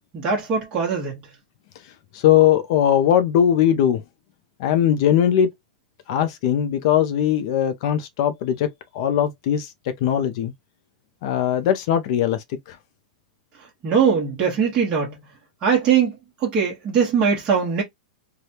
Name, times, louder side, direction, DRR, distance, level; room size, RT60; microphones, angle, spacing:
voice 1, 0.1-1.2 13.8-15.2 15.6-16.2 16.4-17.8, right 6 dB, 20° right, 1.1 m, -21 dB
voice 2, 2.1-4.0 4.6-5.5 6.1-8.7 8.9-9.7 10.0-10.5 11.2-12.8, left 10 dB, 45° left, 0.5 m, -20 dB
3.3 x 2.2 x 2.8 m
supercardioid pair, 160°, 5 cm